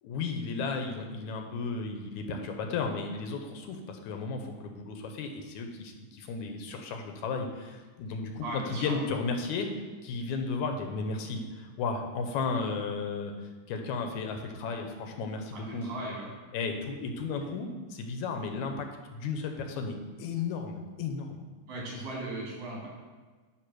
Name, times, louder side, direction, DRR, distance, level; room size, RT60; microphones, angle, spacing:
voice 1, 0.0-8.5 8.8-9.7 10.0-13.3 13.7-15.9 16.5-18.9 19.1-21.4, left 4 dB, 80° left, 4 dB, 2.1 m, -34 dB
voice 2, 8.4-9.0 15.5-16.3 21.7-22.9, right 2 dB, 75° right, -4 dB, 3.7 m, -38 dB
9.9 x 3.3 x 6.1 m, 1.4 s
omnidirectional pair, 3.4 m